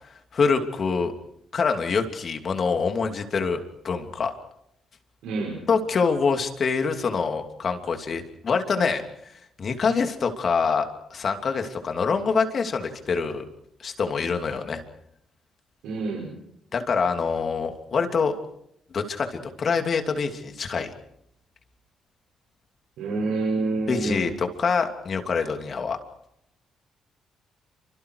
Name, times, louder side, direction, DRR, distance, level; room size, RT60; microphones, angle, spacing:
voice 1, 0.3-1.1 1.5-4.3 5.7-9.0 9.6-13.5 13.8-14.8 16.7-18.4 18.9-20.9 23.9-26.0, left 5 dB, 50° left, 5 dB, 2.9 m, -25 dB
voice 2, 5.2-5.6 15.8-16.3 23.0-24.2, right 3 dB, 90° right, -3 dB, 6.0 m, -27 dB
28.5 x 25.0 x 4.8 m, 0.74 s
cardioid pair, 90°, 0 cm